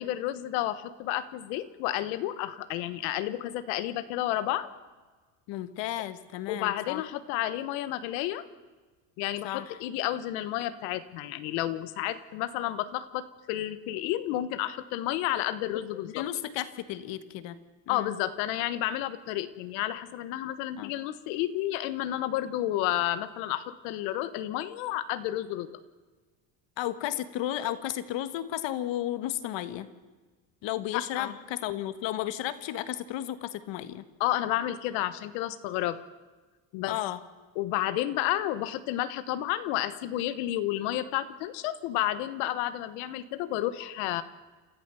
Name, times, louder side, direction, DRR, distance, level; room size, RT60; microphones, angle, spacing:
voice 1, 0.0-4.7 6.5-8.4 9.2-16.3 17.9-25.8 30.9-31.4 34.2-36.0 36.7-37.0 37.6-44.2, left 13 dB, 90° left, 13 dB, 1.3 m, -31 dB
voice 2, 5.5-7.0 9.4-9.8 16.1-17.6 17.9-18.1 20.8-20.9 26.8-29.9 30.6-34.0 36.9-37.2, left 13 dB, 65° left, 12 dB, 1.5 m, -33 dB
28.5 x 13.5 x 6.9 m, 1.3 s
cardioid pair, 110°, 47 cm